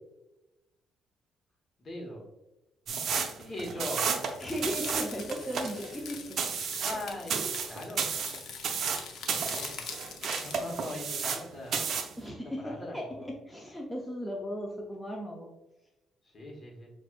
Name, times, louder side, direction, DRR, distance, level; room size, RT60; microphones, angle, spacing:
voice 1, 1.8-2.2 3.4-4.0 6.8-8.1 9.2-9.9 10.4-11.8 12.6-13.1 16.3-16.9, left 1 dB, 45° left, -1 dB, 1.3 m, -40 dB
sound 1, 2.9-11.5 11.7-12.2, right 6 dB, 65° right, 0.5 m, -32 dB
sound 2, 4.3-11.2, left 5 dB, 70° left, 0.6 m, -44 dB
voice 2, 4.4-6.4 12.2-15.5, equal, 5° left, -2 dB, 0.7 m, -36 dB
5.9 x 2.6 x 2.5 m, 0.98 s
cardioid pair, 90°, 0 cm